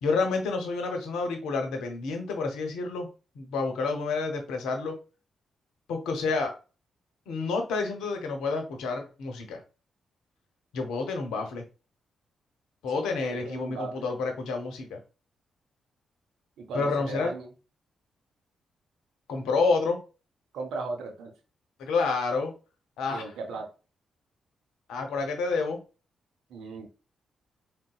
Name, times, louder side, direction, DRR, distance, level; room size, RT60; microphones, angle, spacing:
voice 1, 0.0-3.1 3.4-5.0 5.9-6.5 7.3-9.6 10.7-11.6 12.8-15.0 16.7-17.3 19.3-20.0 21.8-22.5 23.0-23.2 24.9-25.8, left 4 dB, 80° left, 4 dB, 0.7 m, -29 dB
voice 2, 13.0-14.1 16.6-17.5 20.5-21.3 23.1-23.7 26.5-26.9, right 3 dB, 75° right, 4 dB, 0.6 m, -37 dB
3.9 x 2.0 x 2.3 m, 0.33 s
hypercardioid pair, 45°, 0 cm